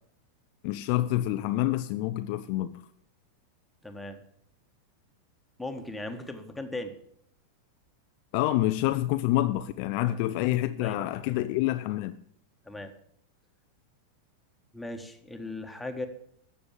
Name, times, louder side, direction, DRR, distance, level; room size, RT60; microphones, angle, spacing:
voice 1, 0.6-2.8 8.3-12.2, left 15 dB, 45° left, 0.5 m, -27 dB
voice 2, 3.8-4.2 5.6-6.9 10.0-10.3 10.8-11.5 12.6-12.9 14.7-16.1, left 2 dB, 5° left, 1.5 m, -38 dB
14.0 x 6.9 x 7.2 m
figure-of-eight pair, 90°, 0 cm